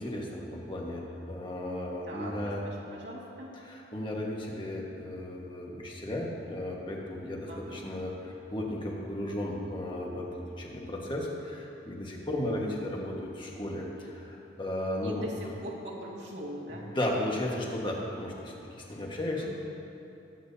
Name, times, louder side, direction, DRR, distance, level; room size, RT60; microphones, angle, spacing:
voice 1, 0.0-2.6 3.6-10.3 10.6-15.2 16.7-19.6, left 1 dB, 30° left, -2 dB, 1.5 m, -35 dB
voice 2, 2.0-3.5 7.5-8.0 15.0-15.3 15.6-16.9 19.4-19.6, right 1 dB, 85° right, -4 dB, 2.2 m, -42 dB
21.5 x 8.8 x 2.8 m, 2.8 s
head